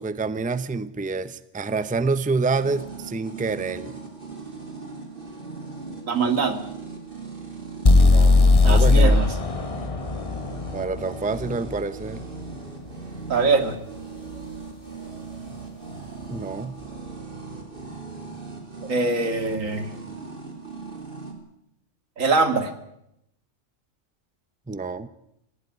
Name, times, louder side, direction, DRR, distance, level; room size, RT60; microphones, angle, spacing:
voice 1, 0.0-4.0 7.9-9.2 10.7-12.3 16.3-16.8 24.7-25.1, right 4 dB, 10° right, 14 dB, 0.6 m, -27 dB
sound 1, 2.5-21.3, right 4 dB, 45° right, 3.1 m, -39 dB
voice 2, 6.1-6.6 8.6-9.3 13.3-13.8 18.9-19.9 22.2-22.7, right 4 dB, 85° right, 8 dB, 2.5 m, -22 dB
sound 2, 7.9-11.8, left 3 dB, 30° left, 1.0 m, -18 dB
19.0 x 16.0 x 9.6 m, 0.81 s
omnidirectional pair, 1.3 m